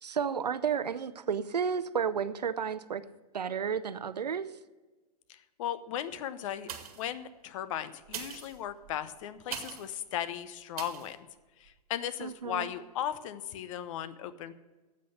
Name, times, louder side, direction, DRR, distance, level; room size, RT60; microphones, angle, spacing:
voice 1, 0.0-3.0 3.3-4.5 12.2-12.7, right 7 dB, 85° right, 15 dB, 0.6 m, -32 dB
voice 2, 5.3-6.7 7.0-11.2 11.6-14.5, left 10 dB, 55° left, 13 dB, 0.8 m, -37 dB
sound 1, 6.6-7.2 8.0-10.0 10.7-11.1 11.7-11.8, right 8 dB, 65° right, 1.6 m, -42 dB
9.3 x 7.6 x 7.9 m, 1.2 s
hypercardioid pair, 110°, 20 cm